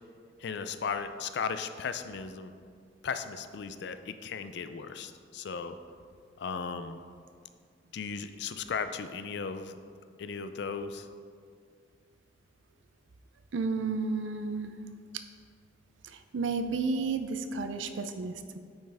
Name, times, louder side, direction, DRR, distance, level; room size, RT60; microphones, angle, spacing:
voice 1, 0.4-2.5 3.0-5.8 6.4-7.0 7.9-9.8 10.2-11.1, left 5 dB, 60° left, 10 dB, 0.4 m, -36 dB
voice 2, 13.5-14.7 16.0-18.6, right 4 dB, 80° right, 8 dB, 0.5 m, -32 dB
8.9 x 5.4 x 3.4 m, 2.2 s
head